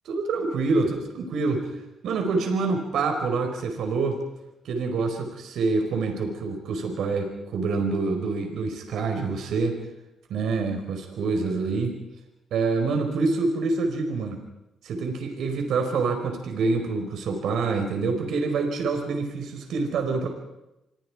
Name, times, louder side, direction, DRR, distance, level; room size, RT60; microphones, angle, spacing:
voice 1, 0.0-1.7 2.0-4.2 4.6-9.7 10.3-12.0 12.5-14.4 14.8-20.3, right 4 dB, 75° right, 4 dB, 4.7 m, -26 dB
27.0 x 23.5 x 4.9 m, 0.93 s
cardioid pair, 90°, 0 cm